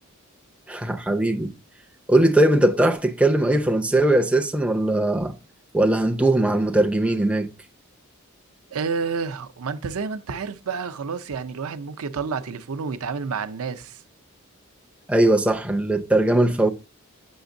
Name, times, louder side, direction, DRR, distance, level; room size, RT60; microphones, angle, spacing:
voice 1, 0.7-1.5 2.1-5.3 5.7-7.5 15.1-16.7, right 1 dB, 5° right, 0.4 m, -20 dB
voice 2, 8.7-14.0, right 5 dB, 80° right, 0.5 m, -29 dB
7.1 x 5.8 x 2.6 m
head